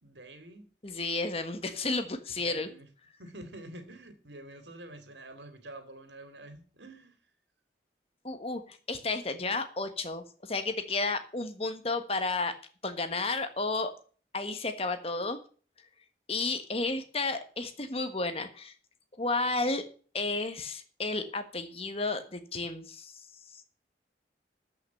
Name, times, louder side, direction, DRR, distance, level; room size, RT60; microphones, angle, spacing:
voice 1, 0.0-0.7 2.4-2.9 3.2-7.2, right 1 dB, 90° right, 2.6 m, -47 dB
voice 2, 0.8-2.7 8.2-12.5 12.8-13.9 14.3-15.4 16.3-18.7 19.2-19.8 20.1-23.1, left 3 dB, 35° left, 1.4 m, -32 dB
13.5 x 5.9 x 6.9 m
head